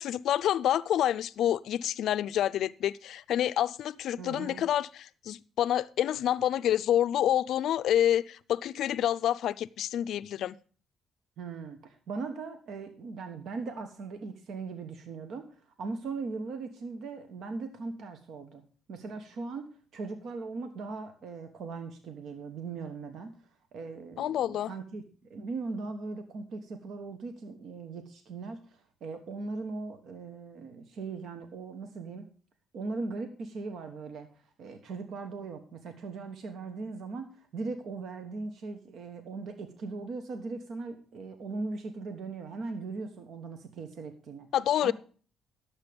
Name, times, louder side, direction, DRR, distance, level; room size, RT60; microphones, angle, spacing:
voice 1, 0.0-10.6 24.2-24.7 44.5-44.9, left 11 dB, 75° left, 0.4 m, -28 dB
voice 2, 4.2-4.6 11.4-18.6 18.9-23.3 23.7-25.0 25.3-32.3 32.7-44.5 44.8-44.9, right 4 dB, 65° right, 1.2 m, -39 dB
11.5 x 7.3 x 5.1 m
cardioid pair, 115°, 0 cm